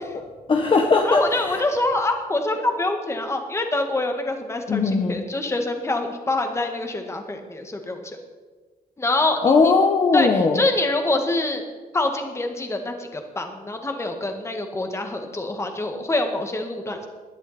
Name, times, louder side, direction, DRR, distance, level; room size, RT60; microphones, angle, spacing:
voice 1, 0.5-1.6 4.7-5.2 9.4-10.6, left 4 dB, 35° left, 3 dB, 1.1 m, -19 dB
voice 2, 1.0-8.2 9.0-9.5 10.1-11.6 11.9-17.1, left 2 dB, 15° left, 5 dB, 1.8 m, -25 dB
19.5 x 12.0 x 4.3 m, 1.4 s
cardioid pair, 145°, 16 cm